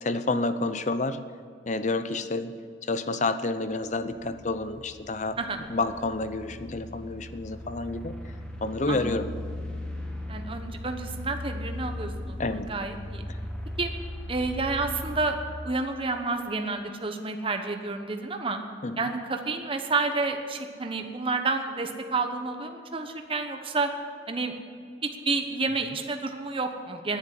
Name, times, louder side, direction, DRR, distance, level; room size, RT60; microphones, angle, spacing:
voice 1, 0.0-1.2 1.7-5.4 5.7-8.2 8.6-9.3 12.4-12.7 18.8-19.0, left 2 dB, 40° left, 11 dB, 0.7 m, -29 dB
sound 1, 3.7-15.3, left 1 dB, 5° left, 1.4 m, -38 dB
voice 2, 10.3-13.2 13.8-13.9 14.3-15.4 15.6-18.6 19.0-23.9 24.3-24.5 25.0-27.2, right 3 dB, 30° right, 5 dB, 1.0 m, -30 dB
10.5 x 10.0 x 9.7 m, 2.2 s
head